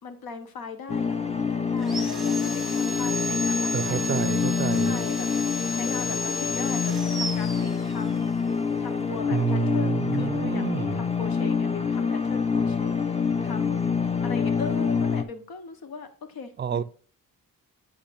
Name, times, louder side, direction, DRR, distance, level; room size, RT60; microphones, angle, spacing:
voice 1, 0.0-4.4 4.8-5.3 5.7-8.3 8.8-13.9 14.2-16.8, left 5 dB, 85° left, 1.2 m, -39 dB
sound 1, 0.9-15.2, left 5 dB, 20° left, 0.5 m, -26 dB
Sawing, 1.8-8.3, left 1 dB, ahead, 1.1 m, -33 dB
voice 2, 3.7-5.0 9.3-11.0 16.6-16.8, right 7 dB, 30° right, 0.4 m, -28 dB
8.8 x 4.9 x 2.5 m
cardioid pair, 105°, 35 cm